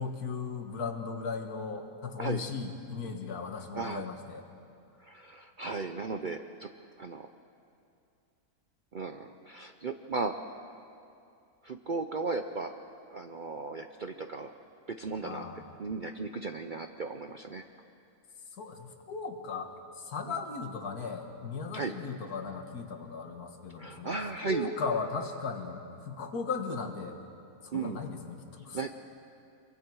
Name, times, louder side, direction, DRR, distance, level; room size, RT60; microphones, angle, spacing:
voice 1, 0.0-4.4 15.2-15.7 18.6-24.2 24.4-27.2 27.6-28.8, left 4 dB, 80° left, 5 dB, 2.0 m, -37 dB
voice 2, 3.7-4.1 5.0-6.7 7.0-7.3 8.9-10.6 11.6-12.7 13.1-14.5 14.9-15.4 15.8-17.6 21.7-21.9 23.8-24.7 27.7-28.0 28.7-28.9, right 4 dB, 55° right, 6 dB, 0.5 m, -36 dB
25.0 x 23.0 x 4.7 m, 2.5 s
omnidirectional pair, 1.6 m